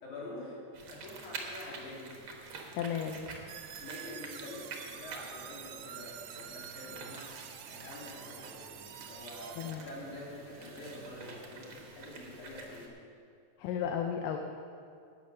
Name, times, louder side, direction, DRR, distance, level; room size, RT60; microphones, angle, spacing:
voice 1, 0.0-0.6 0.9-2.1 3.8-7.3 7.7-12.9, left 1 dB, 60° left, -6 dB, 4.5 m, -46 dB
sound 1, 0.7-12.9, right 3 dB, 55° right, 1.5 m, -48 dB
voice 2, 2.7-3.3 9.6-9.9 13.6-14.4, left 8 dB, 80° left, 4 dB, 2.3 m, -34 dB
sound 2, 3.5-9.7, right 10 dB, 75° right, 1.7 m, -48 dB
11.5 x 9.2 x 6.2 m, 2.5 s
omnidirectional pair, 3.8 m